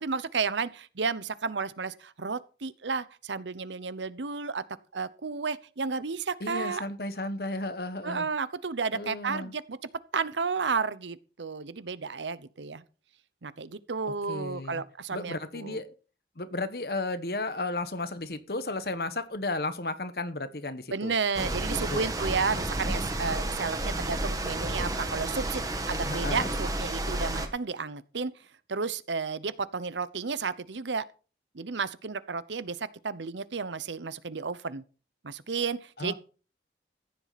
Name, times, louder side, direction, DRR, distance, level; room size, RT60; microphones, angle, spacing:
voice 1, 0.0-4.6 4.9-6.8 8.0-12.8 13.4-15.8 20.9-28.3 28.7-31.0 31.5-34.8 35.2-36.1, right 5 dB, 90° right, 0.8 m, -32 dB
voice 2, 6.4-8.3 8.9-9.5 14.3-14.8 15.1-15.9 16.4-21.1 21.9-22.1 26.0-26.6 36.0-36.1, left 2 dB, 60° left, 1.2 m, -34 dB
sound 1, 21.3-27.5, right 1 dB, 20° right, 1.6 m, -31 dB
14.5 x 10.5 x 4.2 m
head